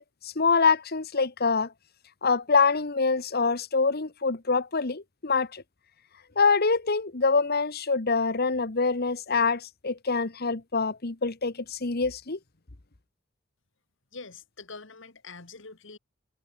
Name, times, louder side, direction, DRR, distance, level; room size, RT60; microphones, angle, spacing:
voice 1, 0.0-1.7 2.2-5.6 6.3-12.4, left 4 dB, 50° left, 1.4 m, -25 dB
voice 2, 14.1-16.0, left 4 dB, 70° left, 2.6 m, -44 dB
head